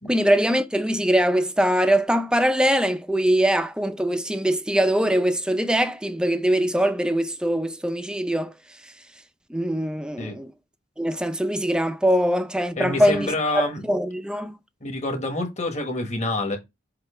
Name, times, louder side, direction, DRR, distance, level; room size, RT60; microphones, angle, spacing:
voice 1, 0.1-8.5 9.5-10.5 11.0-14.5, equal, 5° right, 0.5 m, -22 dB
voice 2, 12.8-13.8 14.8-16.6, left 2 dB, 35° left, 1.5 m, -27 dB
7.5 x 2.8 x 5.0 m
head